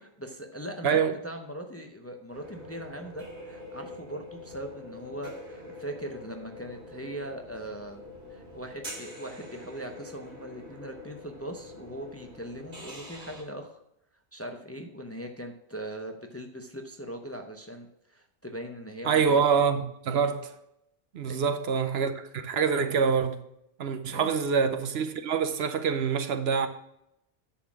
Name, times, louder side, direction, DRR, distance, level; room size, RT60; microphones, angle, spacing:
voice 1, 0.2-8.0 8.3-13.8 14.3-19.4 21.3-21.5 24.1-24.3, right 1 dB, 15° left, 0.6 m, -40 dB
voice 2, 0.8-1.1 19.0-20.5 21.1-23.4 23.8-26.7, right 6 dB, 70° right, 0.9 m, -26 dB
sound 1, 2.3-13.4, left 1 dB, 45° right, 2.3 m, -45 dB
10.0 x 4.1 x 6.0 m
omnidirectional pair, 1.1 m